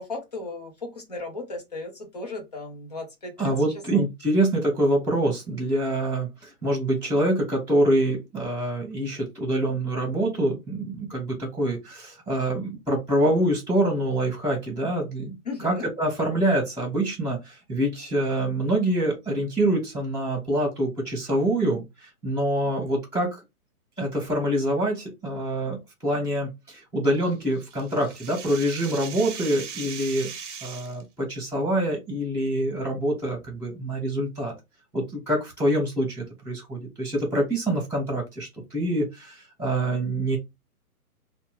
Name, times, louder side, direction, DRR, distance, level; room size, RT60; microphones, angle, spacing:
voice 1, 0.0-3.5 3.9-4.0 15.5-15.9, left 2 dB, 30° left, 0.6 m, -36 dB
voice 2, 3.4-23.4 24.0-25.8 26.0-30.3 30.6-34.5 34.9-40.4, right 1 dB, 5° left, 1.1 m, -25 dB
sound 1, 27.2-31.0, right 6 dB, 50° right, 0.7 m, -39 dB
2.7 x 2.1 x 3.4 m
hypercardioid pair, 170°, 45 cm